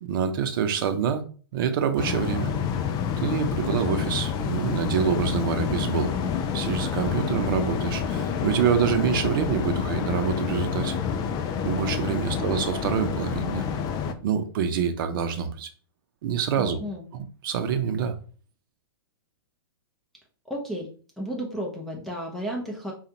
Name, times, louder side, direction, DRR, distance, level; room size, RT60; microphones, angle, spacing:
voice 1, 0.0-1.2 1.5-2.5 3.2-6.2 6.5-11.0 11.6-13.6 14.2-15.7 16.2-16.8 17.4-18.2, right 7 dB, 60° right, 7 dB, 0.7 m, -26 dB
sound 1, 2.0-14.1, left 7 dB, 30° left, 0.5 m, -28 dB
voice 2, 12.3-12.7 16.6-17.0 20.4-20.9 21.2-22.9, equal, ahead, -4 dB, 0.8 m, -34 dB
5.0 x 2.4 x 2.8 m, 0.40 s
hypercardioid pair, 115°, 13 cm